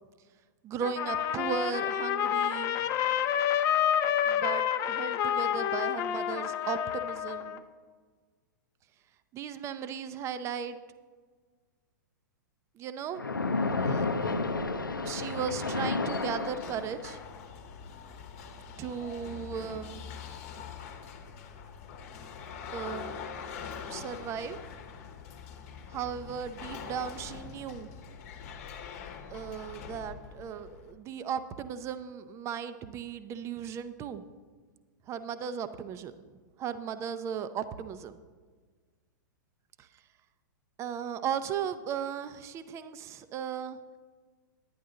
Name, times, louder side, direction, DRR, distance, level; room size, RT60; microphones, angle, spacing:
voice 1, 0.6-2.8 4.3-7.6 9.3-10.8 12.7-13.2 13.8-14.1 15.0-17.2 18.8-20.2 22.7-23.2 23.9-24.6 25.9-28.0 29.3-34.3 35.1-36.1 36.6-38.2 39.8-39.9 40.8-43.8, right 7 dB, 25° right, 12 dB, 0.6 m, -36 dB
Trumpet, 0.8-7.6, left 10 dB, 30° left, 0.6 m, -29 dB
Splash splatter, 13.2-17.2, left 3 dB, 85° left, 0.6 m, -31 dB
sound 1, 15.8-30.9, left 6 dB, 45° left, 1.0 m, -44 dB
10.5 x 10.0 x 3.8 m, 1.5 s
figure-of-eight pair, 105°, 11 cm